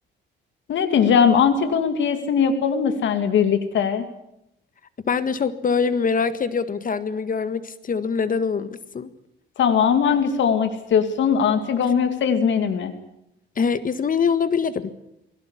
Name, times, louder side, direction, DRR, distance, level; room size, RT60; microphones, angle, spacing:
voice 1, 0.7-4.0 9.6-12.9, left 7 dB, 70° left, 2.6 m, -20 dB
voice 2, 5.1-9.1 13.6-14.9, left 5 dB, 45° left, 1.6 m, -23 dB
21.0 x 18.0 x 9.8 m
cardioid pair, 90°, 20 cm